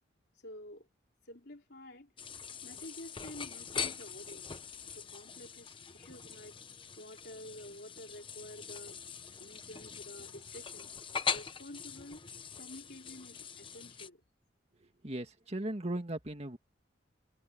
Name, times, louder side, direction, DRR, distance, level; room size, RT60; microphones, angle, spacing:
voice 1, 0.4-0.9 1.3-2.1 2.6-4.5 5.0-6.6 7.0-9.0 9.4-10.9 11.3-12.2 12.6-14.2, left 1 dB, 60° left, 3.9 m, -50 dB
sound 1, 2.2-14.1, left 6 dB, 30° left, 1.0 m, -42 dB
voice 2, 14.7-16.6, right 1 dB, 35° right, 2.2 m, -38 dB
head